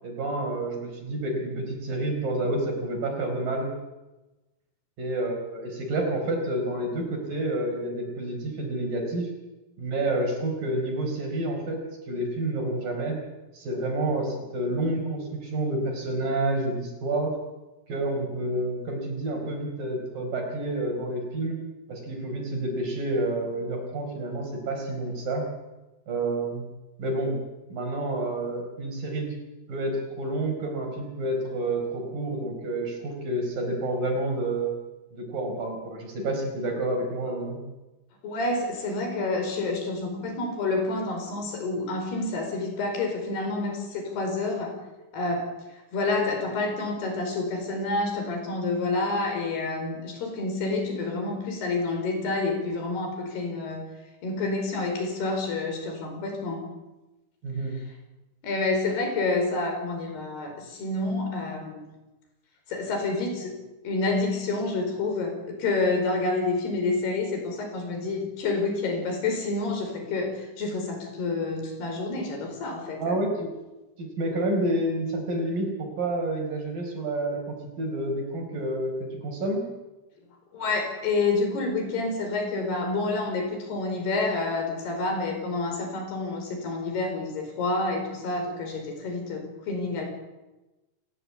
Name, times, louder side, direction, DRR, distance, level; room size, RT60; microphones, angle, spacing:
voice 1, 0.0-3.7 5.0-9.3 9.8-11.8 12.1-13.2 13.5-17.4 17.9-21.6 21.9-25.5 26.1-26.6 27.0-27.4 27.7-29.3 29.7-34.7 35.1-37.6 57.4-57.8 73.0-73.5 74.0-79.6, right 1 dB, 60° right, 3 dB, 6.2 m, -29 dB
voice 2, 38.2-44.8 45.1-45.5 45.9-53.9 54.2-56.7 58.4-61.8 62.7-63.6 63.9-73.2 80.5-90.1, left 3 dB, 90° left, 4 dB, 7.0 m, -28 dB
29.5 x 15.0 x 8.4 m, 1.1 s
omnidirectional pair, 4.5 m